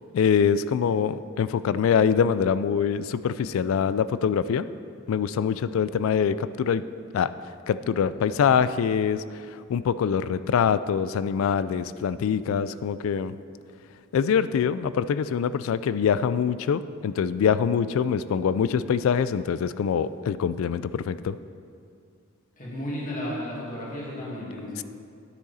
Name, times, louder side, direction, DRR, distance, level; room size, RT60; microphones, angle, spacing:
voice 1, 0.1-4.7 5.1-6.8 7.1-7.3 7.7-9.2 9.5-13.4 14.1-21.4, left 7 dB, 70° left, 15 dB, 0.3 m, -24 dB
voice 2, 22.6-24.8, left 1 dB, 40° left, -5 dB, 2.0 m, -33 dB
10.0 x 6.4 x 4.1 m, 2.3 s
head